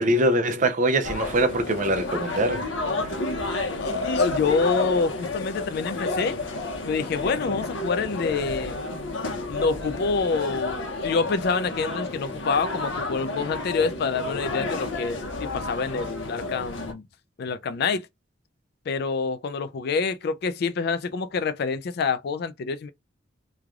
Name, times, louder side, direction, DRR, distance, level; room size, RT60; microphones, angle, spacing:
voice 1, 0.0-2.6 3.0-3.1, right 1 dB, 40° right, 0.6 m, -23 dB
sound 1, 1.0-16.9, left 2 dB, 75° left, 0.8 m, -31 dB
voice 2, 3.8-6.4 6.9-8.8 9.5-17.0 17.4-18.0 18.9-22.9, left 4 dB, 55° left, 0.3 m, -27 dB
3.2 x 2.4 x 3.5 m
head